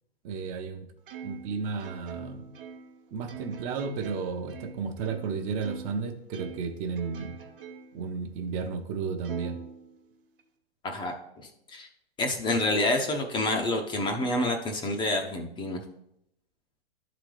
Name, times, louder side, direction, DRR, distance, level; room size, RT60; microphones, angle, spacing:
voice 1, 0.2-0.9 1.2-2.5 3.1-7.4 7.9-9.6, right 5 dB, 30° right, 5 dB, 0.8 m, -33 dB
Plucked string instrument, 1.1-6.0 6.3-8.0 8.5-8.6 9.2-10.4, right 6 dB, 60° right, 1.3 m, -44 dB
voice 2, 10.8-11.9 12.2-15.8, left 2 dB, 15° left, 4 dB, 0.6 m, -28 dB
11.5 x 3.9 x 3.2 m, 0.78 s
figure-of-eight pair, 110°, 30 cm